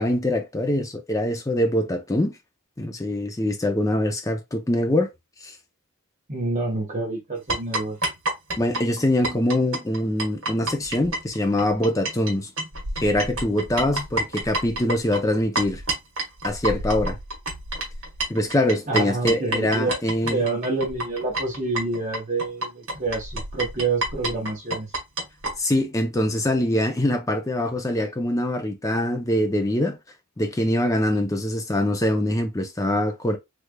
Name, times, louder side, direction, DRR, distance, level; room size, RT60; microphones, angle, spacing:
voice 1, 0.0-2.3 2.8-5.1 5.4-5.6 8.6-12.5 13.0-15.8 16.4-17.2 18.3-20.4 25.6-30.0 30.4-33.4, left 1 dB, 15° left, 0.5 m, -23 dB
voice 2, 6.3-8.0 18.9-20.0 20.2-24.9, right 3 dB, 35° right, 0.9 m, -27 dB
sound 1, 7.5-12.3 12.6-25.5, right 1 dB, 70° right, 1.2 m, -29 dB
3.4 x 3.2 x 2.2 m
head